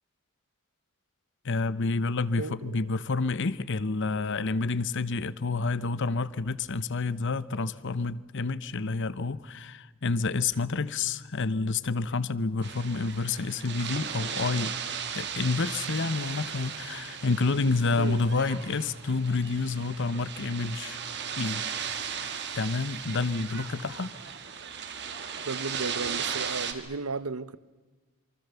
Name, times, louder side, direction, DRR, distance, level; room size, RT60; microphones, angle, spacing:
voice 1, 1.4-14.8 15.1-21.0 21.4-22.0 22.5-24.2, left 3 dB, 60° left, 0.9 m, -29 dB
voice 2, 2.4-2.9 18.0-18.3 25.4-27.6, right 3 dB, 90° right, 0.9 m, -34 dB
sound 1, 12.6-26.7, right 7 dB, 55° right, 2.2 m, -36 dB
27.0 x 24.0 x 7.0 m
head